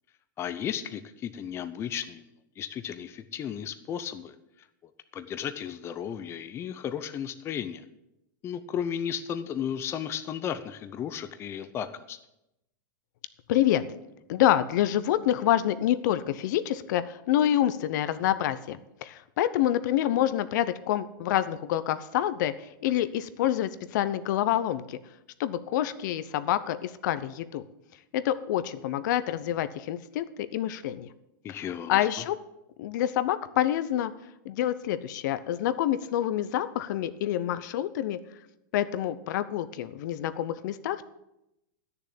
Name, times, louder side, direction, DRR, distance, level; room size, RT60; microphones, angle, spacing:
voice 1, 0.4-2.3 2.6-4.3 5.1-7.8 8.4-12.2 31.4-32.3, left 9 dB, 25° left, 11 dB, 0.6 m, -34 dB
voice 2, 13.5-13.8 14.3-25.0 25.4-27.6 28.1-31.1 31.9-32.4 32.8-34.1 34.4-38.2 38.7-41.0, left 12 dB, 60° left, 14 dB, 0.7 m, -27 dB
11.0 x 6.9 x 8.4 m, 0.88 s
supercardioid pair, 145°, 11 cm